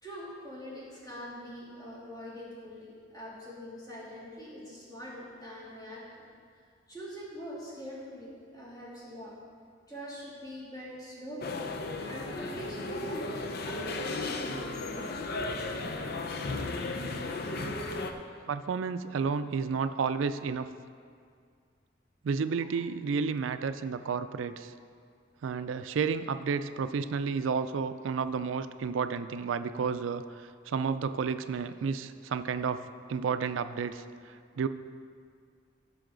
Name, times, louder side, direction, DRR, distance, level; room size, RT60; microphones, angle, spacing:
voice 1, 0.0-6.2 6.9-9.4 9.9-11.6 12.0-14.6 19.9-20.0, equal, 20° left, -7 dB, 2.7 m, -43 dB
sound 1, 11.4-18.1, left 2 dB, 55° left, 0.7 m, -35 dB
voice 2, 18.5-20.7 22.2-24.7 25.4-32.8 33.1-34.7, right 5 dB, 85° right, 11 dB, 0.4 m, -31 dB
15.0 x 6.4 x 3.9 m, 2.2 s
head